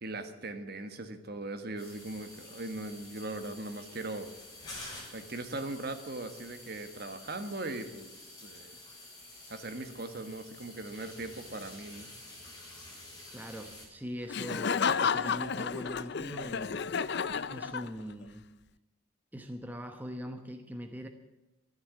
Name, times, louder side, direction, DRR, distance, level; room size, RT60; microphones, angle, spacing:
voice 1, 0.0-4.3 5.1-8.8 9.5-12.1, right 2 dB, 50° right, 8 dB, 1.5 m, -39 dB
sound 1, 1.8-13.8, left 2 dB, 20° left, 6.7 m, -49 dB
voice 2, 13.3-16.8 17.5-18.5 19.3-21.1, equal, 10° right, 5 dB, 0.9 m, -42 dB
Laughter, 14.3-18.2, left 6 dB, 50° left, 0.5 m, -31 dB
13.0 x 11.5 x 9.7 m, 1.1 s
head